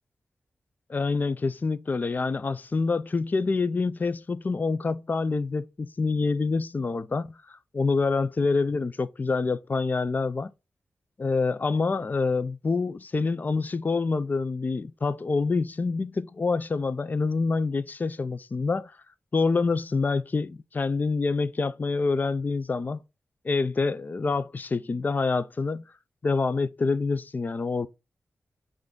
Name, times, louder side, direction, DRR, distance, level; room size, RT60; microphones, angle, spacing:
voice 1, 0.9-7.4 7.7-10.5 11.2-18.9 19.3-23.0 23.4-25.8 26.2-27.9, left 4 dB, 35° left, 0.4 m, -26 dB
5.6 x 2.6 x 3.7 m
wide cardioid pair, 90°, 5 cm